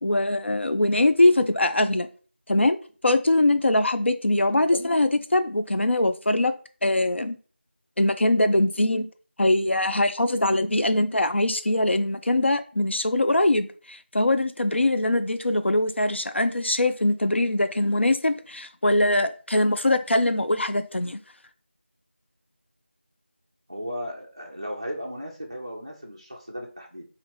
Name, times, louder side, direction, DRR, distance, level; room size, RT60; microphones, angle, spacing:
voice 1, 0.0-2.1 2.5-2.8 3.0-6.5 6.8-7.4 8.0-9.1 9.4-21.2, left 1 dB, 75° left, 9 dB, 0.4 m, -22 dB
voice 2, 23.7-27.1, equal, 30° right, 0 dB, 0.4 m, -36 dB
2.8 x 2.5 x 3.3 m, 0.39 s
figure-of-eight pair, 175°, 6 cm